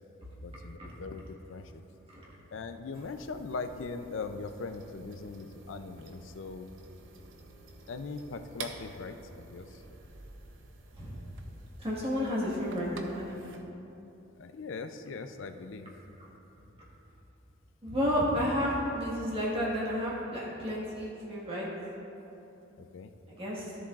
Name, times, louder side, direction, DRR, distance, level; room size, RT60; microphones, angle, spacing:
voice 1, 0.4-1.8 2.5-6.7 7.9-9.8 14.4-15.9 22.8-23.1, left 4 dB, 70° left, 8 dB, 0.5 m, -40 dB
sound 1, 2.9-13.6, right 3 dB, 70° right, 0.7 m, -50 dB
voice 2, 11.8-13.5 16.2-16.3 17.8-21.7 23.3-23.7, equal, 30° right, -6 dB, 1.6 m, -31 dB
14.0 x 7.0 x 2.5 m, 3.0 s
head